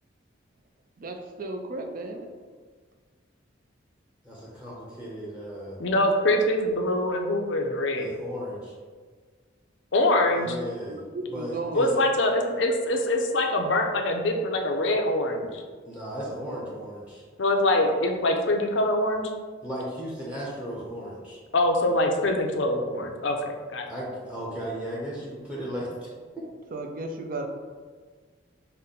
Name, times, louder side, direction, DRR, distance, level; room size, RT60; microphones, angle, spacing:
voice 1, 1.0-2.3 10.9-11.9 26.7-27.5, right 2 dB, 45° right, 4 dB, 0.5 m, -34 dB
voice 2, 4.2-5.8 8.0-8.7 10.3-11.0 11.3-11.9 15.9-17.2 19.6-21.4 23.9-26.1 26.4-26.5, equal, 5° right, -5 dB, 0.7 m, -36 dB
voice 3, 5.8-8.1 9.9-10.6 11.7-15.6 17.4-19.3 21.5-23.9, left 1 dB, 70° left, 3 dB, 0.5 m, -24 dB
5.5 x 2.1 x 3.8 m, 1.5 s
head